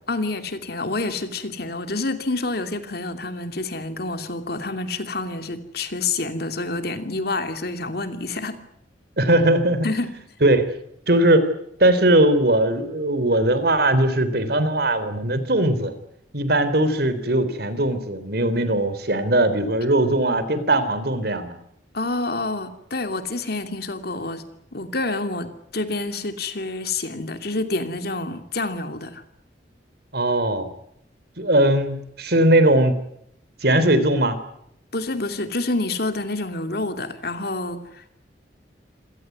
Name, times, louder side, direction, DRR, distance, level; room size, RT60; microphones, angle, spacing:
voice 1, 0.1-8.6 9.8-10.1 21.9-24.4 24.7-29.2 34.9-38.1, left 2 dB, 55° left, 8 dB, 2.7 m, -28 dB
voice 2, 9.2-9.9 10.4-10.7 11.1-11.5 11.8-15.9 16.3-21.6 30.1-30.7 31.4-33.0 33.6-34.4, right 1 dB, 55° right, 12 dB, 3.5 m, -19 dB
27.5 x 17.5 x 9.4 m, 0.73 s
head